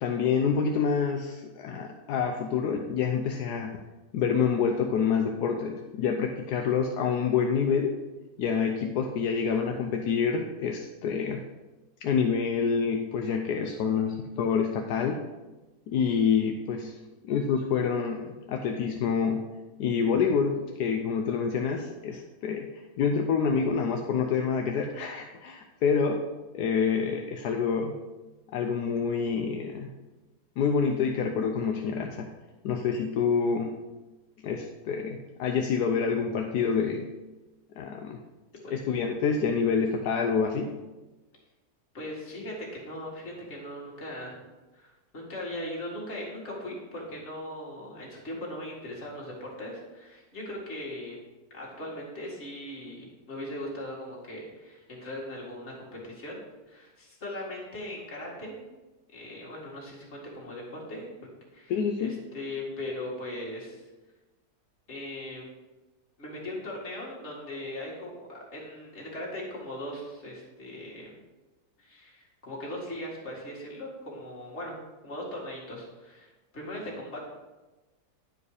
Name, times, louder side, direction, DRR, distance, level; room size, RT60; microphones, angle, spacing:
voice 1, 0.0-3.7 4.1-7.9 8.4-11.4 12.0-15.2 15.9-17.0 17.2-19.4 19.8-22.7 23.0-26.2 26.5-27.9 28.5-29.9 30.6-32.3 32.6-33.7 34.4-37.1 37.8-38.2 38.7-40.7 61.7-62.1, left 6 dB, 80° left, 3 dB, 1.2 m, -27 dB
voice 2, 41.9-44.4 44.7-51.2 51.5-56.4 56.7-58.6 59.1-61.1 61.5-63.8 64.9-65.5 66.2-71.1 71.8-74.8 75.0-77.3, left 1 dB, 45° left, -4 dB, 2.3 m, -39 dB
10.5 x 4.9 x 4.8 m, 1.1 s
omnidirectional pair, 1.7 m